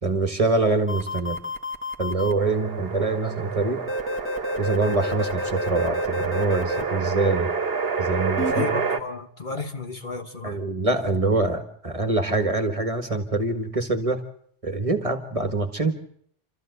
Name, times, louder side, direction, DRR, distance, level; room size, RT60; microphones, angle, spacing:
voice 1, 0.0-1.4 2.0-3.8 4.6-7.5 8.0-8.7 10.4-14.2 14.6-15.9, right 3 dB, 30° right, 1.6 m, -24 dB
sound 1, 0.9-2.3 3.9-6.8 8.4-8.6, left 2 dB, 10° left, 1.5 m, -30 dB
sound 2, 2.4-9.0, right 5 dB, 55° right, 1.4 m, -29 dB
voice 2, 8.5-10.6, left 3 dB, 45° left, 1.3 m, -32 dB
28.0 x 13.5 x 8.0 m
omnidirectional pair, 1.2 m